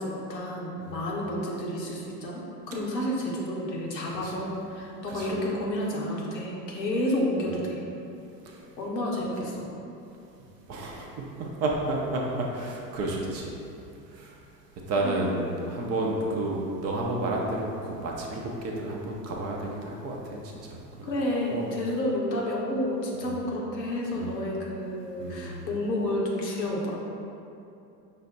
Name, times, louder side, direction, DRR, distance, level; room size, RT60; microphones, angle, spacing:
voice 1, 0.0-7.8 8.8-9.6 15.0-15.3 21.0-27.0, left 1 dB, 80° left, -3 dB, 1.0 m, -30 dB
voice 2, 10.7-13.6 14.1-14.4 14.9-21.1 21.5-21.7 23.2-23.4 24.1-24.4 25.2-25.6, right 2 dB, 30° right, -1 dB, 0.6 m, -31 dB
5.5 x 2.2 x 4.0 m, 2.7 s
figure-of-eight pair, 80°, 50 cm